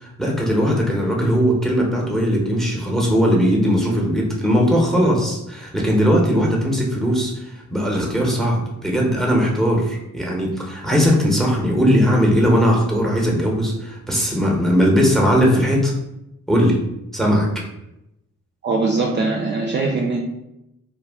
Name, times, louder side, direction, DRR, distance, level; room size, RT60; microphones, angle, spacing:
voice 1, 0.0-15.9 16.5-16.8 17.1-17.6, equal, ahead, -1 dB, 0.8 m, -19 dB
voice 2, 18.6-20.2, right 3 dB, 35° right, -1 dB, 0.4 m, -21 dB
2.3 x 2.1 x 3.4 m, 0.87 s
supercardioid pair, 55°, 31 cm